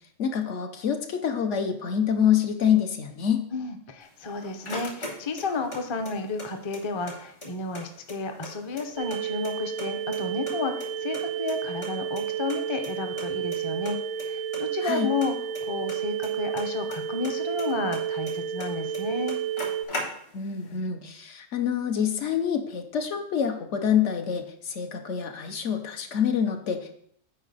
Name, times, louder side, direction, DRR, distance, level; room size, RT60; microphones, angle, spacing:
voice 1, 0.2-3.4 14.8-15.1 20.3-27.0, left 8 dB, 70° left, 5 dB, 1.1 m, -26 dB
voice 2, 3.5-15.3 15.6-19.4, left 4 dB, 30° left, 6 dB, 0.6 m, -32 dB
sound 1, 4.0-5.8 6.0-7.1 7.4-7.5 7.7-9.2 9.4-10.2 10.5-11.9 12.2-12.3 12.5-12.6 12.8-12.9 13.2-13.6 13.8-14.3 14.5-17.0 17.2-18.7 18.9-19.0 19.3-20.5, left 1 dB, 55° left, 2.0 m, -38 dB
sound 2, 9.0-19.9, right 9 dB, 80° right, 0.9 m, -31 dB
8.4 x 4.9 x 4.1 m, 0.67 s
omnidirectional pair, 1.3 m